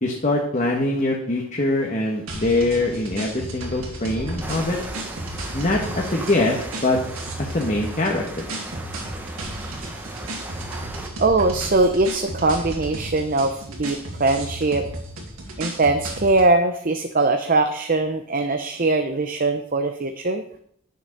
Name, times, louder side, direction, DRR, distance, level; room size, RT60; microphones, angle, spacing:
voice 1, 0.0-4.8 5.5-7.0 7.4-8.5, left 2 dB, 35° left, 0 dB, 1.4 m, -23 dB
sound 1, 2.3-16.5, right 1 dB, 90° right, 2.7 m, -34 dB
sound 2, 4.4-11.1, right 2 dB, 10° right, 1.3 m, -36 dB
voice 2, 11.2-14.9 15.6-20.4, right 2 dB, 40° right, 6 dB, 0.7 m, -21 dB
10.0 x 6.7 x 6.6 m, 0.67 s
head